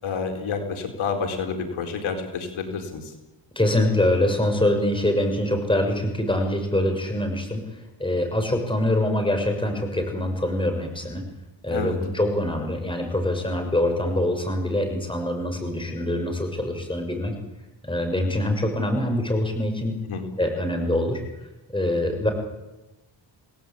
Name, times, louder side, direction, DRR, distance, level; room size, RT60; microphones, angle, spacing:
voice 1, 0.0-3.1 11.7-12.0 20.1-20.2, left 5 dB, 80° left, 4 dB, 4.5 m, -29 dB
voice 2, 3.5-7.6 8.0-11.2 11.6-17.3 17.8-20.0 20.4-21.2 21.7-22.3, left 1 dB, 10° left, 4 dB, 6.4 m, -24 dB
27.5 x 18.5 x 8.7 m, 1.0 s
cardioid pair, 95°, 47 cm